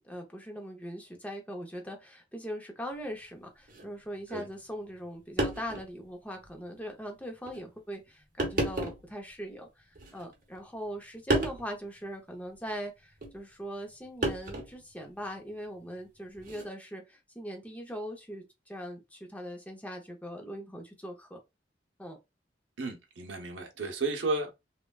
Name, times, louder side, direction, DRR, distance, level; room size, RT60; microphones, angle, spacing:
voice 1, 0.0-21.4 22.0-22.2, equal, 10° left, 0.6 m, -41 dB
sound 1, 3.7-3.9 4.9-5.0 5.4-5.9 6.4-6.5 7.5-7.6 8.4-9.1 9.9-10.6 11.3-11.7 13.2-13.4 14.2-14.8 16.4-16.7, right 2 dB, 50° right, 0.9 m, -31 dB
voice 2, 22.8-24.6, right 3 dB, 80° right, 0.8 m, -33 dB
3.2 x 2.2 x 2.3 m
head